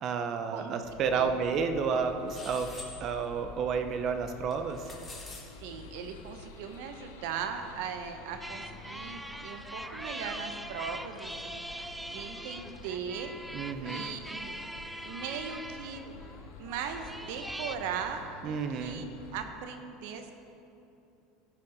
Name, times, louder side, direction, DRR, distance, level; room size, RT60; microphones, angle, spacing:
voice 1, 0.0-4.9 13.5-14.0 18.4-19.0, right 6 dB, 45° right, 7 dB, 0.8 m, -31 dB
sound 1, 0.8-19.4, left 3 dB, 85° left, 0.9 m, -49 dB
voice 2, 1.1-1.4 5.6-11.9 12.1-13.3 13.8-14.5 15.0-16.0 16.6-20.3, right 7 dB, 70° right, 6 dB, 1.0 m, -39 dB
sound 2, 2.3-2.9 4.5-5.4, left 3 dB, 20° left, 1.9 m, -45 dB
sound 3, 8.4-17.8, right 1 dB, 5° right, 0.4 m, -42 dB
13.0 x 5.7 x 5.3 m, 2.8 s
supercardioid pair, 105°, 0 cm